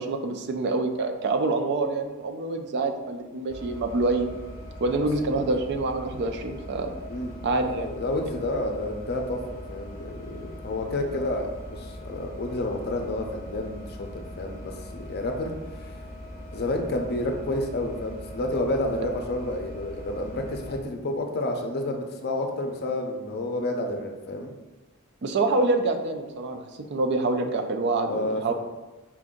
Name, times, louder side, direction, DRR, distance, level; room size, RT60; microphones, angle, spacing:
voice 1, 0.0-4.3 4.8-6.9 7.4-7.9 25.2-28.5, right 3 dB, 55° right, 6 dB, 0.4 m, -26 dB
sound 1, 3.5-20.8, left 1 dB, 15° right, 0.7 m, -41 dB
voice 2, 7.8-15.9 16.5-24.5 28.0-28.5, left 1 dB, 50° left, 3 dB, 0.5 m, -30 dB
4.5 x 2.5 x 3.7 m, 1.1 s
head